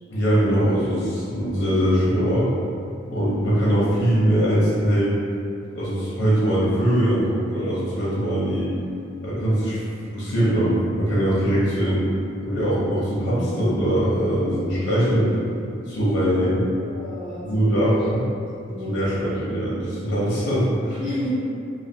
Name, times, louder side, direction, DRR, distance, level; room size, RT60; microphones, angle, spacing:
voice 1, 0.1-2.5 3.1-5.1 5.8-8.7 9.2-9.8 10.1-12.0 12.4-15.3 15.9-16.5 17.4-18.2 18.8-21.0, equal, 90° left, -8 dB, 0.6 m, -21 dB
voice 2, 16.3-18.2 18.5-19.7 21.0-21.3, equal, 30° right, -13 dB, 1.0 m, -33 dB
2.3 x 2.3 x 2.7 m, 2.5 s
head